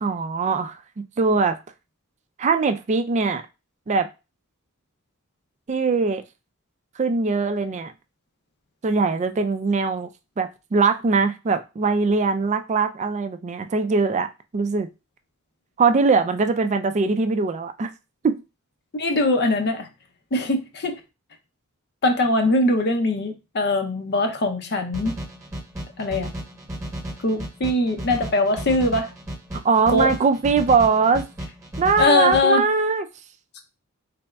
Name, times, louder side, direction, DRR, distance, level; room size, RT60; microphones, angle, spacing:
voice 1, 0.0-1.6 2.4-3.4 3.9-4.1 5.7-6.2 7.0-7.9 8.8-10.1 10.4-14.3 14.5-14.9 15.8-17.9 18.2-18.4 29.6-31.3 31.8-33.1, right 4 dB, 35° right, 0.4 m, -21 dB
voice 2, 18.9-19.9 20.3-21.0 22.0-25.1 26.0-26.3 27.2-29.1 29.9-30.1 32.0-32.7, left 2 dB, 50° left, 0.6 m, -21 dB
sound 1, 24.9-32.4, equal, 15° right, 1.0 m, -34 dB
4.0 x 3.4 x 2.3 m
head